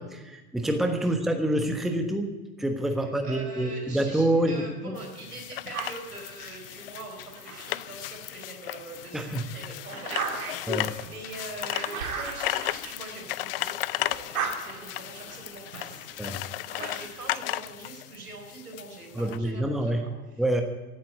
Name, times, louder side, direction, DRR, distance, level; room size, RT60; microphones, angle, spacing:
voice 1, 0.0-5.0 9.1-9.4 10.7-11.0 16.2-16.4 19.1-20.0 20.4-20.6, right 1 dB, ahead, 5 dB, 1.1 m, -27 dB
voice 2, 3.2-20.4, right 2 dB, 85° right, 1 dB, 4.7 m, -43 dB
sound 1, 5.0-19.4, left 15 dB, 40° left, 0.4 m, -35 dB
sound 2, 5.7-8.4 8.9-13.7 14.0-17.3, right 6 dB, 65° right, 2.7 m, -38 dB
15.5 x 8.7 x 9.6 m, 1.2 s
figure-of-eight pair, 95°, 45 cm